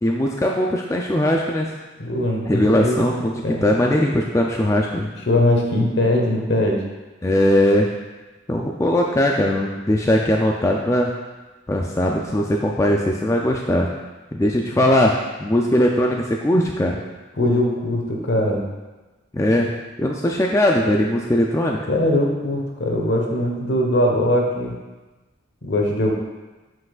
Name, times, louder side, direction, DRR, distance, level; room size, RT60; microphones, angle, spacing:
voice 1, 0.0-1.7 2.5-5.1 7.2-7.9 8.5-11.1 11.7-13.9 14.3-15.1 15.4-17.0 19.3-19.7 20.0-21.9, left 1 dB, 15° left, 0 dB, 0.4 m, -19 dB
voice 2, 2.0-3.6 5.3-6.8 17.4-18.6 21.9-24.8 25.6-26.1, left 1 dB, 65° left, 0 dB, 1.1 m, -21 dB
7.6 x 6.0 x 2.4 m, 1.2 s
head